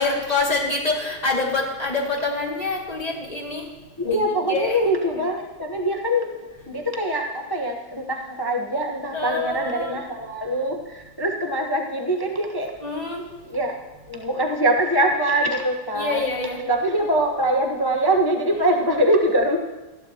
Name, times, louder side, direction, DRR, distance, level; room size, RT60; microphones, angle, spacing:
voice 1, 0.0-3.7 4.0-4.8 9.1-10.0 12.8-13.2 15.9-16.6, left 3 dB, 20° left, -2 dB, 2.2 m, -26 dB
voice 2, 4.0-6.4 6.7-12.7 13.5-13.8 14.1-16.3 16.7-19.6, right 1 dB, 35° left, 2 dB, 0.3 m, -23 dB
20.0 x 15.5 x 2.9 m, 1.2 s
omnidirectional pair, 2.3 m